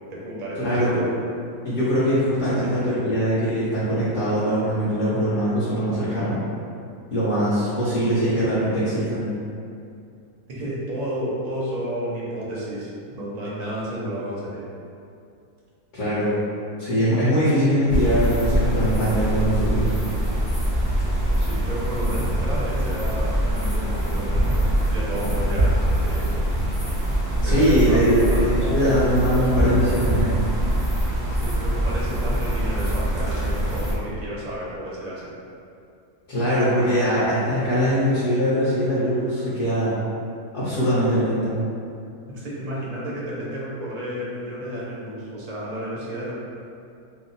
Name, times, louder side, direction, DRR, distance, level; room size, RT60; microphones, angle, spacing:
voice 1, 0.1-1.1 2.4-2.8 10.5-14.6 21.3-26.4 27.4-29.1 31.3-35.3 42.3-46.3, right 1 dB, 50° right, -6 dB, 0.5 m, -32 dB
voice 2, 0.6-1.0 1.6-6.4 7.1-9.3 15.9-16.3 16.8-19.9 27.4-30.4 36.3-39.9 40.5-41.5, equal, 55° left, -11 dB, 1.1 m, -22 dB
sound 1, 17.9-33.9, right 1 dB, 25° left, 0.4 m, -23 dB
2.9 x 2.0 x 3.9 m, 2.5 s
omnidirectional pair, 1.6 m